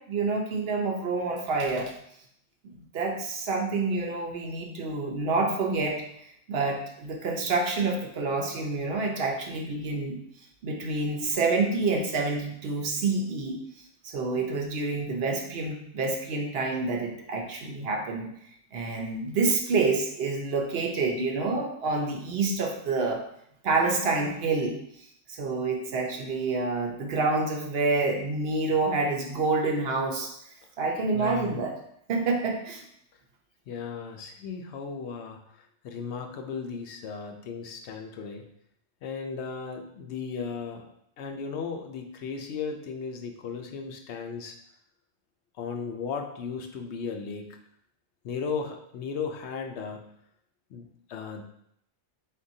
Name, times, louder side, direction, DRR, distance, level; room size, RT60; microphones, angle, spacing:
voice 1, 0.0-1.9 2.6-6.0 6.5-10.2 10.6-13.6 14.0-18.3 18.7-23.2 23.6-24.8 25.3-30.3 30.8-31.8 32.1-32.8, right 3 dB, 65° right, 1 dB, 0.9 m, -28 dB
voice 2, 31.1-31.6 33.7-38.5 39.0-40.9 41.2-44.6 45.6-47.6 48.2-50.1 50.7-51.4, left 5 dB, 75° left, 4 dB, 0.8 m, -36 dB
4.2 x 3.7 x 2.7 m, 0.71 s
omnidirectional pair, 1.2 m